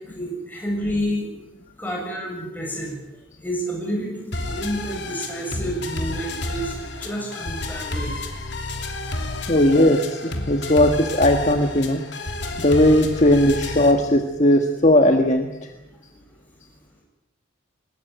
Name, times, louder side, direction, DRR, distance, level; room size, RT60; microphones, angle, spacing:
voice 1, 0.1-1.3 1.8-3.0 3.4-8.2 9.1-9.5, equal, 10° left, -2 dB, 7.7 m, -29 dB
sound 1, 4.3-13.9, left 2 dB, 60° left, 3.1 m, -31 dB
voice 2, 9.5-12.0 12.6-15.5, left 1 dB, 35° left, 5 dB, 1.5 m, -17 dB
20.5 x 20.5 x 9.2 m, 0.97 s
head